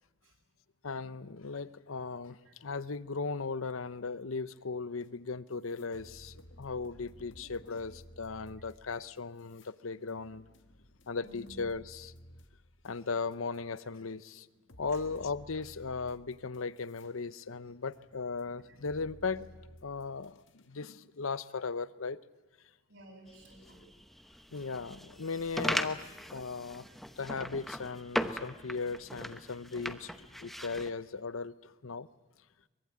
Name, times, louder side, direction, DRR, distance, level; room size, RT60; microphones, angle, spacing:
voice 1, 0.8-10.4 11.1-12.1 12.8-14.5 14.8-19.5 19.8-22.2 24.5-26.8 27.2-30.1 30.4-32.1, left 4 dB, 80° left, 16 dB, 0.8 m, -37 dB
sound 1, 5.0-5.1 5.5-13.8 14.2-14.3 14.7-17.1 17.5-20.8, equal, 65° left, 1.7 m, -55 dB
voice 2, 11.2-11.6 14.9-15.0 18.7-18.8 22.9-23.9 26.5-27.0, right 1 dB, 65° right, -1 dB, 7.5 m, -55 dB
sound 2, 23.3-30.9, equal, ahead, 0.9 m, -39 dB
23.5 x 22.5 x 8.7 m, 1.2 s
head